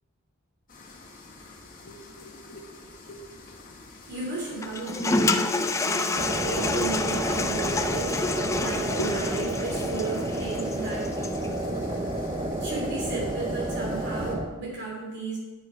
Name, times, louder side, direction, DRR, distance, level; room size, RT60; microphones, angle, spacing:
sound 1, 0.7-14.4, left 2 dB, 45° left, 1.7 m, -48 dB
voice 1, 1.8-3.2 9.0-9.1 11.5-11.7 12.1-12.4, left 1 dB, 80° left, -5 dB, 1.2 m, -39 dB
voice 2, 4.1-11.1 11.7-11.8 12.6-15.4, right 3 dB, 55° right, -3 dB, 3.2 m, -35 dB
Toilet flush, 4.6-11.5, left 3 dB, 15° left, 0.4 m, -28 dB
sound 2, 6.2-14.5, right 1 dB, 25° right, 0.8 m, -30 dB
9.0 x 7.2 x 4.6 m, 1.2 s
head